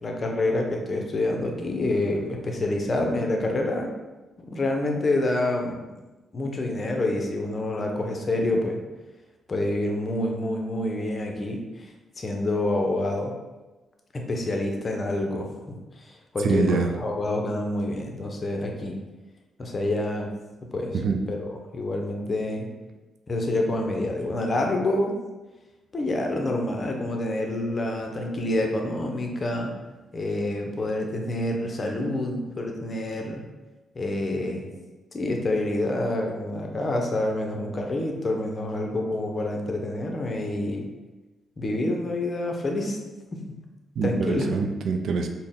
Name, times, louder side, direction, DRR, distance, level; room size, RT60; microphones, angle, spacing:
voice 1, 0.0-3.9 4.4-5.9 6.3-8.8 9.5-11.9 12.2-13.3 14.1-15.8 16.0-19.0 19.6-20.3 20.7-21.0 21.3-22.7 23.3-25.2 25.9-29.7 30.1-33.4 33.9-34.7 35.1-40.8 41.6-43.0 43.3-43.6 44.0-44.5, left 1 dB, 40° left, 2 dB, 0.6 m, -27 dB
voice 2, 16.4-16.9 20.9-21.2 44.0-45.3, right 4 dB, 70° right, 4 dB, 0.4 m, -24 dB
4.1 x 2.1 x 3.6 m, 1.1 s
cardioid pair, 80°, 0 cm